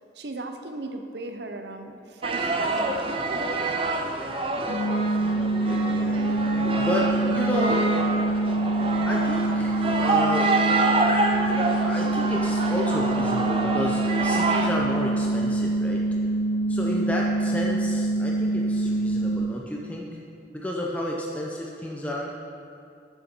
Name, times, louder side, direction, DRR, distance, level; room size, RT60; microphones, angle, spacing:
voice 1, 0.2-3.7, right 2 dB, 75° right, 5 dB, 0.8 m, -37 dB
sound 1, 2.2-14.7, right 2 dB, 30° right, 0.6 m, -27 dB
sound 2, 4.7-19.4, right 2 dB, 65° left, 1.6 m, -25 dB
voice 2, 5.3-7.9 9.1-10.5 11.7-16.0 16.7-20.1 20.5-22.3, equal, 10° left, -2 dB, 0.7 m, -31 dB
13.0 x 6.9 x 4.5 m, 2.6 s
head